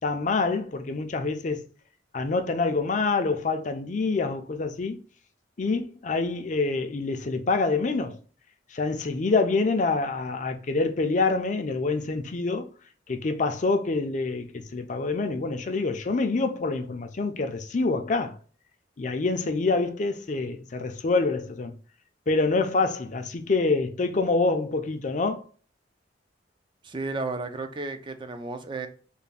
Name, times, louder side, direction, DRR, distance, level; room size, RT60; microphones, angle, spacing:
voice 1, 0.0-1.6 2.1-5.0 5.6-8.2 8.7-12.7 13.1-18.4 19.0-21.7 22.3-25.4, left 3 dB, 40° left, 0.5 m, -26 dB
voice 2, 26.8-28.9, right 3 dB, 25° right, 0.4 m, -33 dB
3.3 x 2.2 x 3.9 m
head